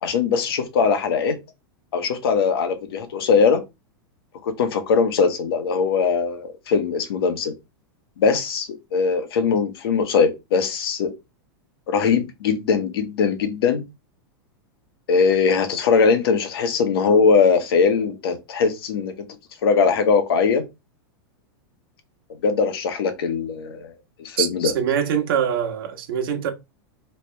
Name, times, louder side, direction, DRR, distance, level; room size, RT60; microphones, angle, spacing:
voice 1, 0.0-1.3 1.9-3.6 4.4-7.5 8.2-11.1 11.9-13.8 15.1-19.3 19.6-20.6 22.4-23.9 24.2-24.7, left 5 dB, 75° left, 1.3 m, -20 dB
voice 2, 24.4-26.5, right 8 dB, 65° right, 1.4 m, -24 dB
3.3 x 3.3 x 4.5 m
supercardioid pair, 145°, 13 cm